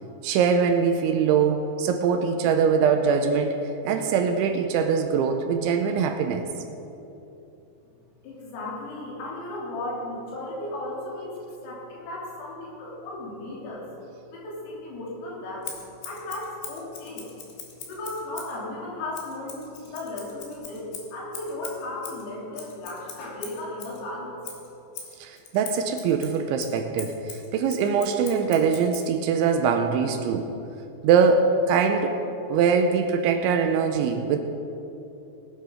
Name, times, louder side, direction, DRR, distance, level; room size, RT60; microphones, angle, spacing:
voice 1, 0.2-3.6 3.9-6.5 25.2-30.5 31.0-32.2 32.5-34.4, right 6 dB, 85° right, 6 dB, 2.9 m, -22 dB
voice 2, 8.2-11.4 11.6-13.9 14.3-15.7 16.1-17.3 17.9-24.3, left 2 dB, 90° left, -5 dB, 5.6 m, -35 dB
Scissors, 15.6-18.6 19.1-24.0 24.4-29.1, left 6 dB, 65° left, 3.4 m, -41 dB
18.0 x 10.5 x 5.1 m, 2.9 s
omnidirectional pair, 5.7 m